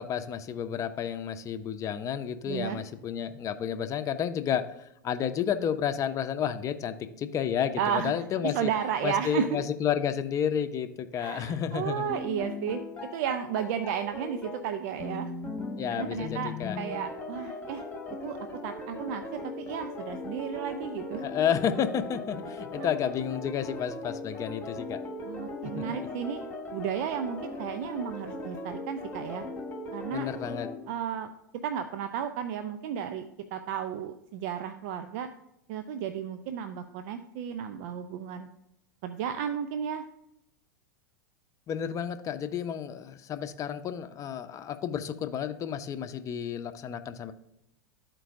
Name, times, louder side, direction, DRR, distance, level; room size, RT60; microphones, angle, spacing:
voice 1, 0.0-8.7 9.0-12.1 15.8-16.8 21.2-25.0 25.6-25.8 30.1-30.7 41.7-47.3, left 8 dB, 30° left, 10 dB, 0.6 m, -31 dB
voice 2, 2.5-2.8 7.8-8.1 8.4-9.6 11.1-12.8 13.1-15.3 15.9-18.4 18.6-21.2 22.8-22.9 25.2-26.4 26.7-29.4 29.9-30.3 30.9-31.3 31.6-35.3 35.7-38.5 39.0-40.0, right 8 dB, 55° right, 9 dB, 0.5 m, -33 dB
sound 1, 12.1-30.7, left 2 dB, 15° left, 1.5 m, -39 dB
12.5 x 4.5 x 2.6 m, 0.82 s
hypercardioid pair, 95°, 10 cm